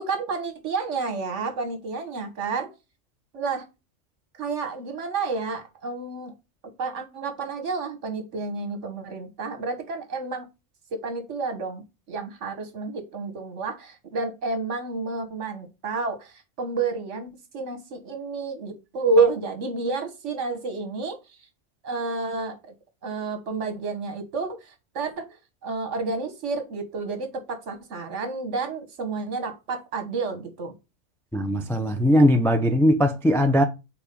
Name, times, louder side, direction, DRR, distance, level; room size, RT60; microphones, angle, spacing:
voice 1, 0.0-2.7 3.3-3.7 4.4-6.3 6.6-10.5 10.9-21.4 21.8-22.6 23.0-30.7, right 4 dB, 70° right, 1.5 m, -30 dB
voice 2, 31.3-33.6, equal, 5° left, 0.4 m, -20 dB
4.9 x 4.2 x 5.2 m
omnidirectional pair, 1.3 m